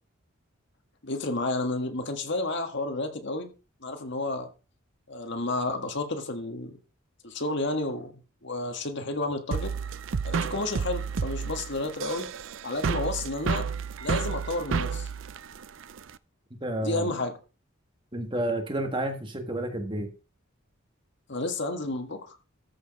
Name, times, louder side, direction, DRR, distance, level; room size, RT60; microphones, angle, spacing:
voice 1, 1.0-3.5 3.8-4.5 5.1-6.8 7.2-8.1 8.4-9.7 10.2-12.3 12.6-13.7 14.0-15.1 16.8-17.4 21.3-22.4, left 2 dB, 55° left, 1.7 m, -31 dB
sound 1, 9.5-16.2, right 5 dB, 60° right, 0.5 m, -31 dB
voice 2, 16.6-17.1 18.1-20.1, right 1 dB, 25° right, 1.6 m, -30 dB
13.5 x 4.9 x 5.4 m
head